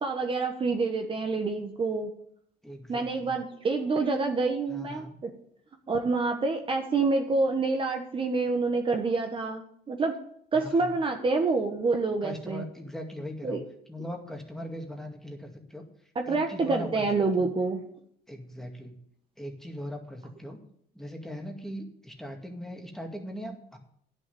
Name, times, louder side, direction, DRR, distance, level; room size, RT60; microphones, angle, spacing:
voice 1, 0.0-2.1 2.9-5.3 5.9-10.1 10.5-12.6 13.4-13.6 16.1-17.8, right 3 dB, 30° right, 3 dB, 1.4 m, -27 dB
voice 2, 2.6-3.4 4.7-5.2 10.5-11.0 12.2-13.6 13.9-15.8 16.3-17.1 17.4-17.5 18.3-19.0 19.4-20.6 20.9-23.8, equal, ahead, 2 dB, 2.2 m, -39 dB
10.5 x 6.7 x 8.5 m, 0.66 s
cardioid pair, 110°, 17 cm